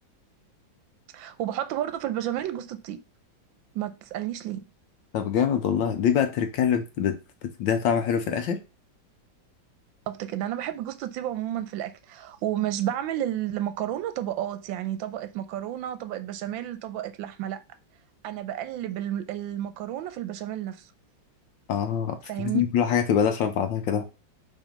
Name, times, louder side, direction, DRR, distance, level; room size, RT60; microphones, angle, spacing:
voice 1, 1.1-3.0 3.7-4.6 10.1-17.6 18.2-20.8 22.3-22.6, right 12 dB, 85° right, 1.4 m, -31 dB
voice 2, 5.1-8.6 21.7-24.0, left 8 dB, 75° left, 1.5 m, -25 dB
5.3 x 3.4 x 5.2 m
omnidirectional pair, 2.1 m